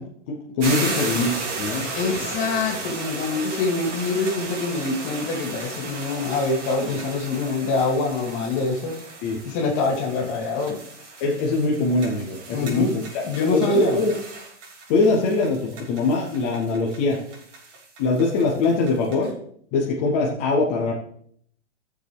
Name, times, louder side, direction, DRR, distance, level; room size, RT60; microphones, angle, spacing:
voice 1, 0.0-1.3 1.6-1.9 2.2-2.8 9.2-9.4 11.2-14.1 14.9-17.2 18.0-19.4 19.7-20.9, left 3 dB, 10° left, -3 dB, 0.3 m, -23 dB
sound 1, 0.6-19.3, right 3 dB, 85° right, 3.1 m, -35 dB
voice 2, 1.9-8.9 9.4-10.8 12.5-12.9 13.2-14.0, left 3 dB, 35° left, -1 dB, 2.8 m, -25 dB
17.5 x 6.7 x 3.3 m, 0.65 s
supercardioid pair, 160°, 35 cm